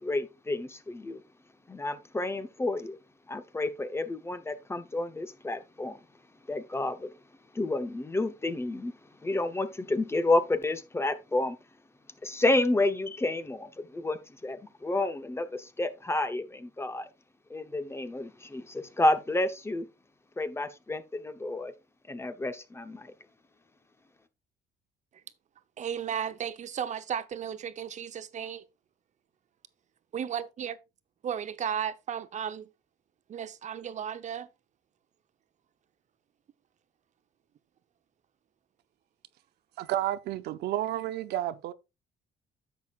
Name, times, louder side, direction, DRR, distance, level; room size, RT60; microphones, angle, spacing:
voice 1, 0.0-1.2 1.7-3.0 3.3-6.0 6.5-7.1 7.5-8.9 9.2-11.6 12.2-17.1 17.5-19.9 20.4-21.7 22.1-23.1, left 2 dB, 15° left, 0.9 m, -30 dB
voice 2, 25.8-28.6 30.1-30.8 31.2-32.7 33.3-34.5, right 8 dB, 45° right, 0.8 m, -34 dB
voice 3, 39.8-41.7, right 13 dB, 75° right, 0.7 m, -31 dB
10.5 x 7.5 x 2.4 m
cardioid pair, 110°, 17 cm